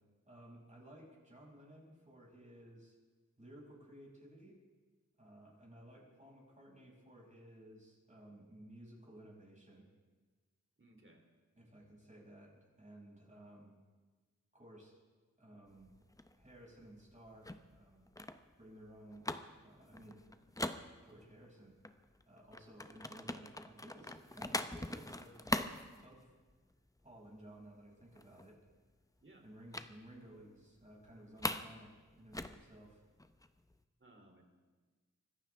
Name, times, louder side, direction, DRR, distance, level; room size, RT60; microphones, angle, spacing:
voice 1, 0.2-3.0 3.4-4.6 5.2-9.8 11.6-13.7 14.5-14.9 15.4-15.9 16.4-18.0 18.6-19.3 19.6-20.2 21.0-21.7 22.3-25.5 26.0-26.3 27.0-28.6 29.4-33.0, right 1 dB, 25° right, -3 dB, 6.4 m, -56 dB
voice 2, 10.8-11.2 29.2-29.4 34.0-34.4, right 1 dB, 40° right, 2 dB, 3.2 m, -61 dB
sound 1, 15.7-21.5 21.8-26.7 27.0-27.3 27.6-27.7 28.0-28.7 29.7-29.9 30.3-30.4 30.8-31.7 32.0-33.7, left 1 dB, 10° left, 0.7 m, -42 dB
25.0 x 14.5 x 3.6 m, 1.4 s
wide cardioid pair, 65°, 32 cm